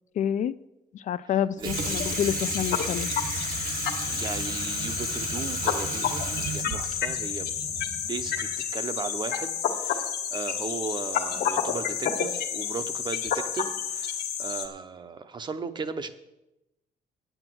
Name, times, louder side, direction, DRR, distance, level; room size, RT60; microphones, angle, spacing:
voice 1, 0.2-0.5 0.9-3.1, left 9 dB, 50° left, 15 dB, 0.4 m, -28 dB
Water tap faucet / Sink (filling or washing), 1.6-8.6, right 6 dB, 55° right, 1.2 m, -34 dB
sound 1, 1.7-14.7, left 8 dB, 80° left, 1.5 m, -30 dB
voice 2, 4.1-16.1, right 5 dB, 30° right, 11 dB, 0.7 m, -36 dB
9.7 x 8.0 x 7.7 m, 0.93 s
cardioid pair, 170°, 16 cm